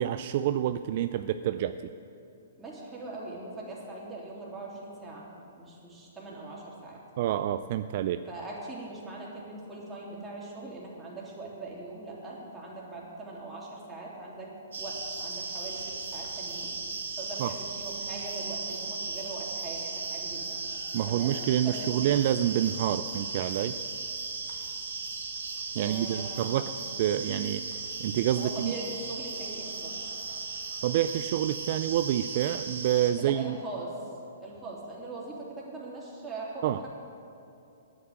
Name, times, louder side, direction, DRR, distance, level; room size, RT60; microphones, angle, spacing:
voice 1, 0.0-1.8 7.2-8.2 17.4-17.5 20.9-23.7 25.7-26.7 27.0-28.7 30.8-33.6 36.6-36.8, right 11 dB, 50° right, 11 dB, 0.3 m, -28 dB
voice 2, 2.6-7.0 8.3-14.5 14.8-16.7 17.2-20.6 21.1-21.4 21.6-21.9 25.8-26.5 28.4-29.9 33.2-34.0 34.4-37.0, right 2 dB, 10° right, -5 dB, 3.2 m, -41 dB
sound 1, 14.7-33.1, right 4 dB, 75° right, 2.1 m, -37 dB
9.4 x 8.8 x 8.8 m, 2.9 s
hypercardioid pair, 130°, 0 cm